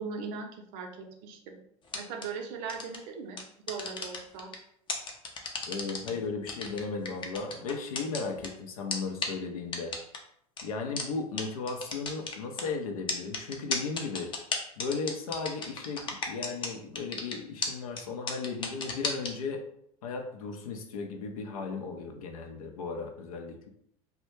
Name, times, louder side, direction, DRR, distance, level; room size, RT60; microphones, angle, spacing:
voice 1, 0.0-1.6 1.9-3.4 3.7-4.5, right 5 dB, 55° right, 3 dB, 0.5 m, -39 dB
sound 1, 1.9-2.3 2.7-3.0 3.4-4.6 4.9-6.1 6.5-8.5 8.9-9.0 9.2-9.3 9.7-10.2 10.6-10.7 11.0-11.1 11.4-11.5 11.7-12.6 13.1-16.7 17.0-17.3 17.6-17.7 18.0-18.1 18.3-19.3, left 4 dB, 25° left, 0.5 m, -33 dB
voice 2, 5.6-9.9 10.6-14.3 14.8-19.6 20.0-23.7, left 4 dB, 80° left, 4 dB, 0.5 m, -36 dB
2.2 x 2.0 x 3.0 m, 0.71 s
hypercardioid pair, 85°, 18 cm